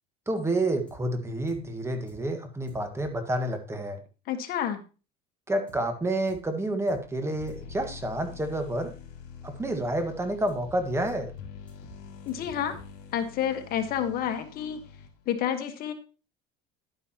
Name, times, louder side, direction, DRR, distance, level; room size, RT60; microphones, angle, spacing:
voice 1, 0.3-4.0 5.5-8.9 9.4-11.3, right 1 dB, 15° right, 6 dB, 1.7 m, -29 dB
sound 1, 0.9-1.0 1.5-1.6 2.1-2.2 2.7-3.1 5.7-5.8 6.3-6.4 6.9-7.0 7.3-7.8 10.5-10.8 11.1-11.2 11.4-12.0 12.3-12.9, right 2 dB, 5° left, 4.9 m, -50 dB
voice 2, 4.3-4.8 12.3-12.8 13.1-14.8 15.3-15.9, left 9 dB, 50° left, 7 dB, 1.5 m, -29 dB
sound 2, 7.4-15.4, left 7 dB, 70° left, 3.2 m, -46 dB
11.0 x 9.6 x 3.0 m, 0.33 s
supercardioid pair, 110°, 19 cm